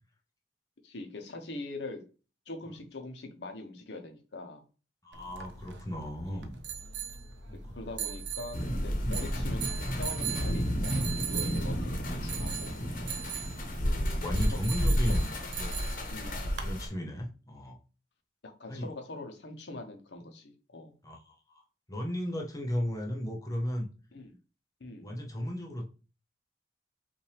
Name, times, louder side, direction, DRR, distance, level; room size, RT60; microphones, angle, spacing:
voice 1, 0.8-2.0 2.5-4.6 6.3-6.6 7.7-12.7 14.4-14.6 16.1-16.5 18.4-20.9 24.1-24.3 24.8-25.1, left 2 dB, 70° left, 5 dB, 0.8 m, -43 dB
voice 2, 5.0-6.6 7.5-7.8 8.7-9.2 10.3-10.4 13.7-15.3 15.6-15.8 16.6-17.8 18.7-18.9 21.0-21.6 21.9-23.9 25.0-25.9, equal, 20° left, 1 dB, 0.7 m, -35 dB
sound 1, 5.1-16.7, right 8 dB, 75° right, 0.7 m, -40 dB
sound 2, 8.5-16.9, equal, 50° left, 1.1 m, -31 dB
5.5 x 2.6 x 3.4 m, 0.35 s
head